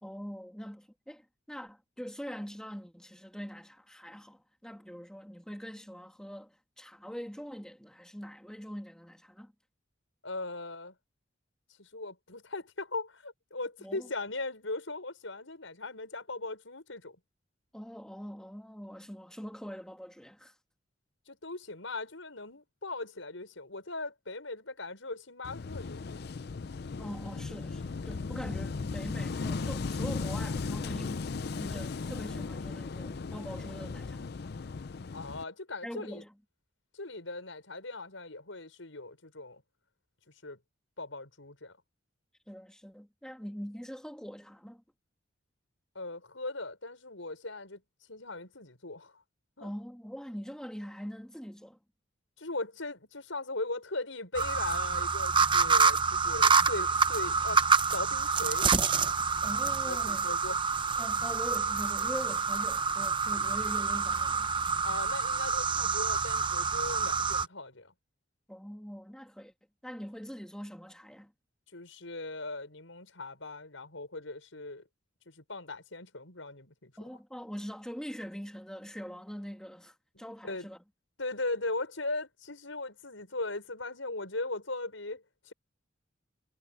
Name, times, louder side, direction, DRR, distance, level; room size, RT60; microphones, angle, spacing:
voice 1, 0.0-9.5 13.8-14.1 17.7-20.5 27.0-31.3 31.5-34.3 35.8-36.3 42.5-44.8 49.6-51.8 59.4-60.3 61.0-64.5 68.5-69.5 69.8-71.3 77.0-80.8, equal, 5° left, 2.3 m, -43 dB
voice 2, 10.2-10.9 11.8-17.2 21.3-26.2 35.1-36.2 36.9-39.6 40.4-40.6 41.0-41.8 45.9-47.8 48.1-49.2 49.6-49.7 52.4-57.6 57.9-58.7 59.8-60.6 64.8-67.9 71.7-74.8 75.3-76.9 80.2-80.7 81.2-85.5, left 2 dB, 85° left, 6.2 m, -39 dB
Wind / Waves surf, 25.4-35.4, left 4 dB, 55° left, 0.5 m, -36 dB
sound 1, 54.3-67.5, right 5 dB, 25° right, 0.8 m, -27 dB
head